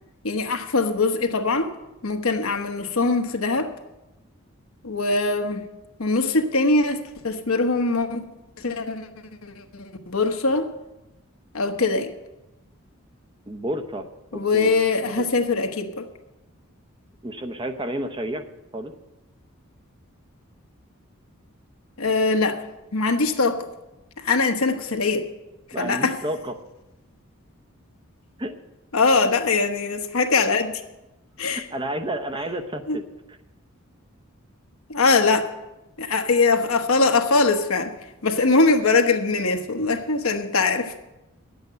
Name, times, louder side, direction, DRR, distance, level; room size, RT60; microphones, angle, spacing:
voice 1, 0.2-1.7 2.0-3.7 4.8-5.7 6.0-8.2 8.6-9.1 9.4-10.7 11.5-12.1 14.3-16.1 22.0-22.6 22.9-23.7 24.2-25.3 25.8-26.1 28.9-30.7 31.4-31.6 32.9-33.0 34.9-35.5 36.0-37.9 38.2-40.9, left 3 dB, 75° left, 5 dB, 1.1 m, -22 dB
voice 2, 13.5-14.0 14.3-14.7 15.1-15.3 17.2-18.5 18.7-18.9 25.7-26.5 28.4-28.5 31.5-33.0, right 1 dB, 20° right, 7 dB, 0.7 m, -30 dB
10.5 x 8.1 x 7.7 m, 0.98 s
head